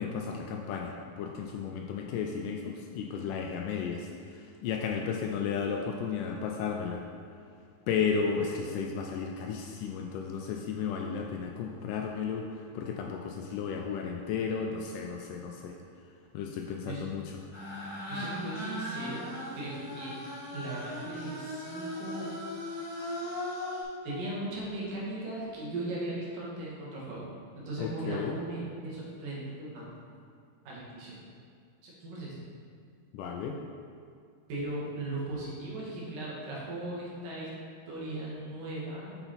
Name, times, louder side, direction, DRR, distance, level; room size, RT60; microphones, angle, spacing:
voice 1, 0.0-7.0 7.9-12.4 12.7-15.7 16.3-17.3 27.8-28.4 33.1-33.6, left 6 dB, 80° left, 1 dB, 1.9 m, -33 dB
sound 1, 17.5-23.8, left 1 dB, 35° left, 2.0 m, -38 dB
voice 2, 18.1-20.2 20.5-22.4 23.0-23.5 24.0-27.2 27.5-29.9 30.7-31.2 31.8-32.4 34.5-37.5 37.9-39.2, right 2 dB, 70° right, -6 dB, 3.1 m, -38 dB
6.8 x 5.9 x 4.1 m, 2.3 s
omnidirectional pair, 4.0 m